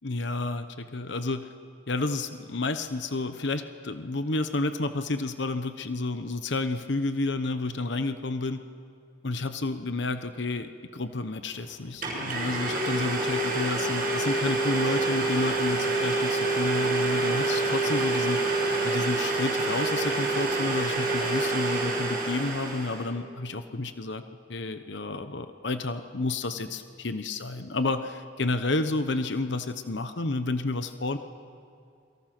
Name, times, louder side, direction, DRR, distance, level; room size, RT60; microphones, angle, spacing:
voice 1, 0.0-1.5 1.9-8.6 9.2-24.2 24.5-31.2, left 2 dB, 65° left, 9 dB, 1.0 m, -30 dB
Domestic sounds home sounds, 11.5-11.6 12.0-23.1, right 2 dB, 50° right, 6.8 m, -27 dB
29.0 x 23.5 x 6.1 m, 2.5 s
head